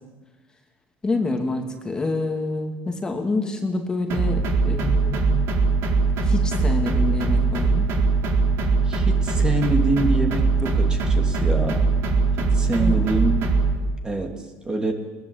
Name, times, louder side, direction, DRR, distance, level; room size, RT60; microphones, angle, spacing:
voice 1, 1.0-5.4 6.2-7.9 12.8-13.1, left 2 dB, 15° left, 3 dB, 2.9 m, -27 dB
sound 1, 4.1-13.8, right 4 dB, 55° right, 4.2 m, -21 dB
voice 2, 8.9-11.8 12.4-13.4 14.0-14.3 14.6-14.9, right 2 dB, 15° right, 3 dB, 3.1 m, -25 dB
21.5 x 21.0 x 8.7 m, 1.2 s
cardioid pair, 135°, 5 cm